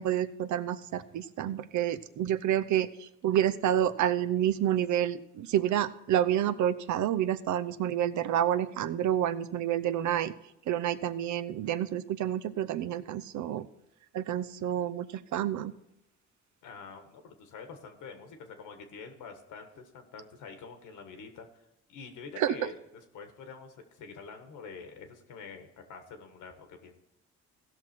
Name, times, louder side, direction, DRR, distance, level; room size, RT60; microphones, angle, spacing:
voice 1, 0.0-10.3 10.7-13.7 14.1-15.7 22.4-22.7, right 11 dB, 70° right, 13 dB, 0.7 m, -29 dB
voice 2, 16.6-21.5 21.9-22.8 23.1-26.9, left 5 dB, 90° left, 6 dB, 1.6 m, -46 dB
16.0 x 6.0 x 4.5 m, 0.86 s
cardioid pair, 90°, 30 cm